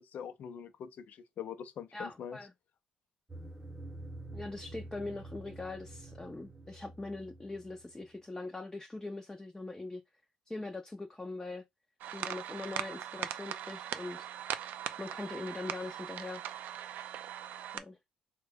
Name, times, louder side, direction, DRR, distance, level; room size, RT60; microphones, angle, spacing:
voice 1, 0.0-2.4, left 8 dB, 60° left, 0.5 m, -43 dB
voice 2, 1.9-2.5 4.3-10.0 10.5-11.6 12.1-14.3 15.0-16.5 17.7-18.0, left 2 dB, 15° left, 0.5 m, -42 dB
sound 1, 3.3-8.1, right 2 dB, 15° right, 0.9 m, -48 dB
sound 2, 12.0-17.8, right 11 dB, 75° right, 0.3 m, -40 dB
3.2 x 2.2 x 3.4 m
supercardioid pair, 60°, 3 cm